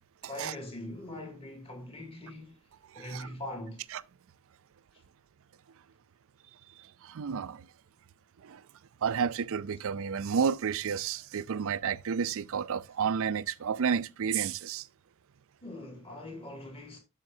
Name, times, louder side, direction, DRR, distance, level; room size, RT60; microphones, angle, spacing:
voice 1, 0.2-2.5 2.9-3.8 15.6-17.0, left 1 dB, 25° left, 2.5 m, -42 dB
voice 2, 2.9-3.3 3.9-4.0 6.8-7.7 8.4-8.6 9.0-14.9, right 7 dB, 65° right, 0.4 m, -31 dB
12.5 x 5.7 x 2.7 m
head